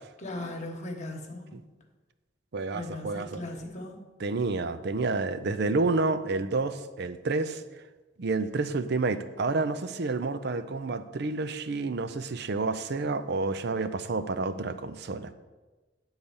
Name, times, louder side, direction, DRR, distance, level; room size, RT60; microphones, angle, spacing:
voice 1, 0.2-1.5 2.7-4.0, left 1 dB, 40° left, 3 dB, 1.2 m, -38 dB
voice 2, 2.5-3.4 4.2-7.6 8.2-15.3, right 3 dB, 60° right, 12 dB, 0.5 m, -29 dB
9.9 x 4.0 x 7.0 m, 1.2 s
head